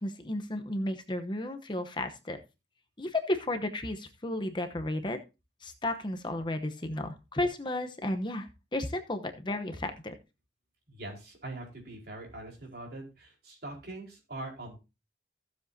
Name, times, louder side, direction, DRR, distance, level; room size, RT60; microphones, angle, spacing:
voice 1, 0.0-2.4 3.0-5.2 5.6-10.1, left 1 dB, 25° left, 7 dB, 0.9 m, -33 dB
voice 2, 10.9-14.8, right 2 dB, 60° right, 0 dB, 4.4 m, -42 dB
15.5 x 7.4 x 2.7 m, 0.28 s
head